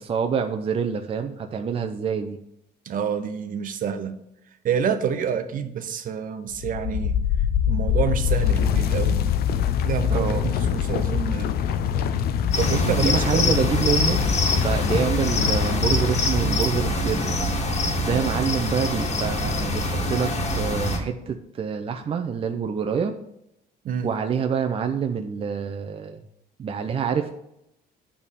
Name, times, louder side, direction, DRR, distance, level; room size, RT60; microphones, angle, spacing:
voice 1, 0.0-2.4 10.1-10.5 12.8-14.2 14.5-17.3 18.0-23.1 24.0-26.2 26.6-27.3, right 6 dB, 35° right, 5 dB, 0.6 m, -26 dB
voice 2, 2.8-4.2 4.6-7.2 7.7-9.2 9.8-11.5 12.6-13.4 23.8-24.1, right 7 dB, 55° right, 9 dB, 0.8 m, -27 dB
sound 1, 6.5-17.3, left 8 dB, 65° left, 0.6 m, -24 dB
sound 2, 12.5-21.0, left 1 dB, 40° left, 1.7 m, -25 dB
8.7 x 3.6 x 6.8 m, 0.81 s
cardioid pair, 110°, 17 cm